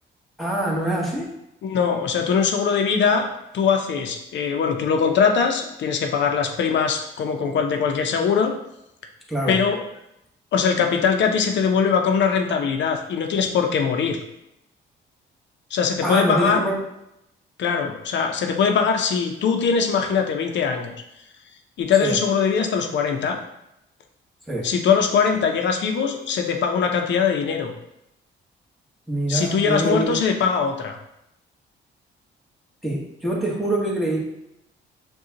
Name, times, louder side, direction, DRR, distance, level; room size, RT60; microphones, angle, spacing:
voice 1, 0.4-1.3 9.3-9.6 16.0-16.8 22.0-22.2 24.5-24.7 29.1-30.2 32.8-34.2, right 1 dB, ahead, -3 dB, 1.2 m, -24 dB
voice 2, 1.6-8.5 9.5-9.8 10.5-14.2 15.7-16.6 17.6-20.9 21.8-23.4 24.6-27.7 29.3-31.0, left 6 dB, 65° left, 4 dB, 0.6 m, -21 dB
6.3 x 2.3 x 2.8 m, 0.84 s
cardioid pair, 90°, 20 cm